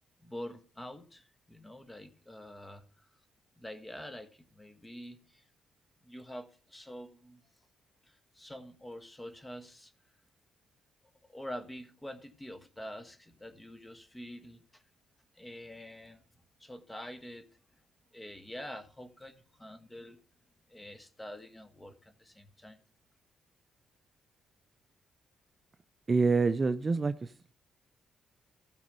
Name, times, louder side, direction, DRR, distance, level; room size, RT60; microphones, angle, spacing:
voice 1, 0.2-3.1 3.6-5.4 6.0-7.4 8.0-9.9 11.3-14.8 15.3-16.2 16.6-17.5 18.1-20.2 20.7-22.8, equal, 10° left, 1.4 m, -46 dB
voice 2, 26.1-27.5, right 4 dB, 30° right, 0.5 m, -27 dB
15.5 x 5.2 x 5.3 m
cardioid pair, 90°, 0 cm